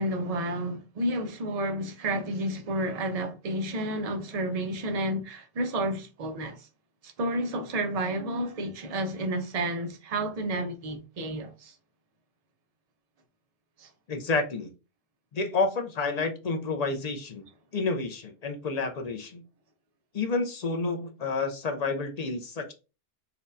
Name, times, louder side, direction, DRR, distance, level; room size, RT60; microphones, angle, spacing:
voice 1, 0.0-6.7 7.0-11.7 13.8-13.9, right 1 dB, 45° right, 0.5 m, -31 dB
voice 2, 14.1-14.7 15.3-17.5 17.7-19.4 20.1-22.7, left 3 dB, 50° left, 0.5 m, -29 dB
4.2 x 2.2 x 2.6 m
omnidirectional pair, 1.2 m